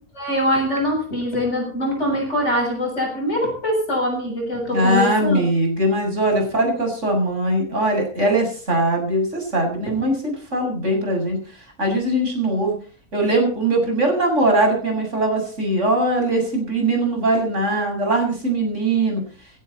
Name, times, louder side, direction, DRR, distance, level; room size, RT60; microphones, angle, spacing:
voice 1, 0.1-5.4, equal, 50° left, 0 dB, 8.0 m, -23 dB
voice 2, 4.7-11.4 11.8-12.8 13.1-19.2, right 1 dB, 55° right, 2 dB, 7.4 m, -21 dB
16.5 x 16.5 x 4.3 m, 0.41 s
omnidirectional pair, 1.5 m